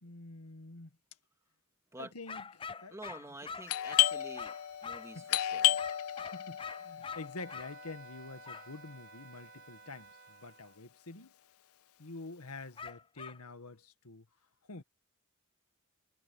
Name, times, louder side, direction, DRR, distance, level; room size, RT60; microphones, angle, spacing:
voice 1, 0.0-0.9 2.0-3.0 5.1-5.2 6.3-11.3 12.0-14.3 14.7-14.8, left 3 dB, 90° left, 1.9 m, -47 dB
sound 1, 2.3-5.2 5.8-7.7 8.4-8.7 12.8-13.4, left 5 dB, 25° left, 0.5 m, -44 dB
voice 2, 2.9-4.5 4.8-5.8, right 1 dB, 15° right, 2.4 m, -48 dB
Doorbell, 3.7-9.1, left 14 dB, 70° left, 0.4 m, -33 dB
Wind instrument woodwind instrument, 7.4-10.8, right 8 dB, 55° right, 6.8 m, -56 dB
head